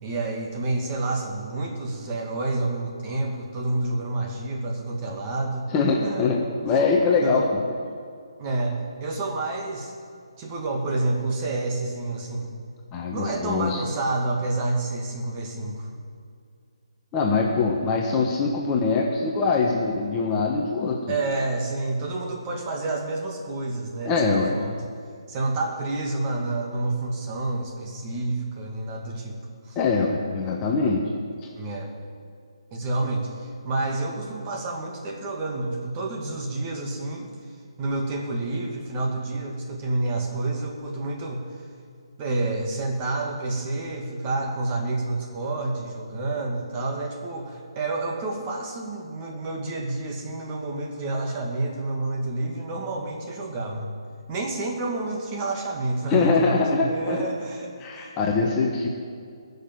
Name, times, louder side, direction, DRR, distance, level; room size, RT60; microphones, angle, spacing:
voice 1, 0.0-5.7 6.0-6.3 7.2-7.5 8.4-9.9 10.4-12.5 13.1-15.9 21.1-24.8 25.3-29.8 31.6-31.9 32.7-37.3 37.8-41.5 42.2-53.9 54.3-58.1, right 2 dB, 25° right, 0 dB, 2.4 m, -29 dB
voice 2, 5.7-7.6 12.9-13.8 17.1-21.0 24.0-24.6 29.7-31.1 56.1-57.3 57.8-58.9, left 4 dB, 20° left, 0 dB, 1.3 m, -23 dB
19.5 x 6.9 x 9.2 m, 2.2 s
figure-of-eight pair, 140°, 3 cm